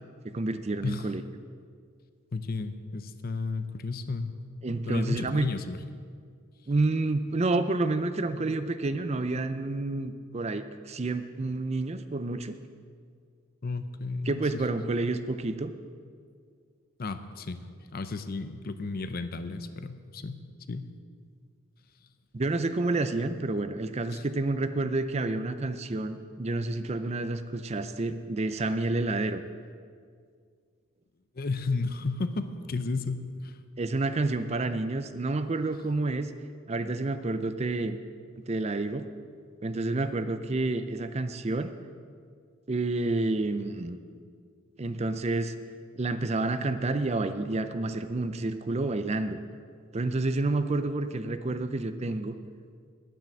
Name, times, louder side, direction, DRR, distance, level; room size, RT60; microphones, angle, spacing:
voice 1, 0.2-1.2 4.6-5.5 6.7-12.6 14.2-15.7 22.3-29.4 33.8-36.3 36.7-38.0 38.5-39.1 39.6-41.7 42.7-44.0 44.8-45.5 45.9-49.4 49.9-52.3, right 2 dB, 30° right, 10 dB, 0.5 m, -29 dB
voice 2, 2.3-4.3 4.8-5.8 13.6-14.4 17.0-17.6 17.9-20.4 20.7-20.9 24.1-24.2 31.4-33.6, left 3 dB, 45° left, 10 dB, 0.6 m, -33 dB
10.0 x 9.1 x 7.4 m, 2.1 s
head